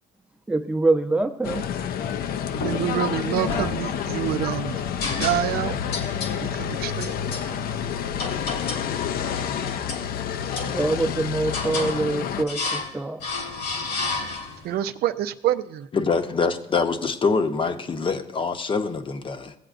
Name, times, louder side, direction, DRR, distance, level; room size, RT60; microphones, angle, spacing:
voice 1, 0.5-1.6 10.7-13.3, right 2 dB, 5° right, 0.7 m, -24 dB
sound 1, 1.4-12.4, left 8 dB, 60° left, 0.5 m, -29 dB
sound 2, 2.5-3.1 3.5-4.3 5.0-5.6 5.9-6.4 7.0-7.5 8.2-8.9 9.3-10.1 10.5-11.1 11.5-12.0 12.5-12.9 13.2-14.7, left 3 dB, 80° left, 1.7 m, -31 dB
voice 2, 2.6-4.8 5.1-5.8 6.4-7.1 14.6-15.9, right 11 dB, 65° right, 0.5 m, -27 dB
voice 3, 15.9-19.6, left 4 dB, 30° left, 0.8 m, -25 dB
17.0 x 7.8 x 2.5 m
cardioid pair, 110°, 17 cm